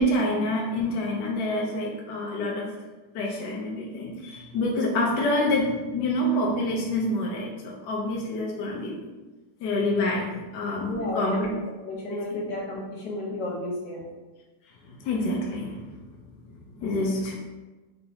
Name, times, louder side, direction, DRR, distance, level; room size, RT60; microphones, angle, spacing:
voice 1, 0.0-2.7 3.1-9.0 9.6-11.5 14.9-15.9 16.8-17.4, left 1 dB, 75° left, -1 dB, 0.9 m, -27 dB
voice 2, 10.9-11.5 11.8-14.0, left 1 dB, 55° left, -4 dB, 1.6 m, -32 dB
4.4 x 3.8 x 2.7 m, 1.2 s
omnidirectional pair, 2.4 m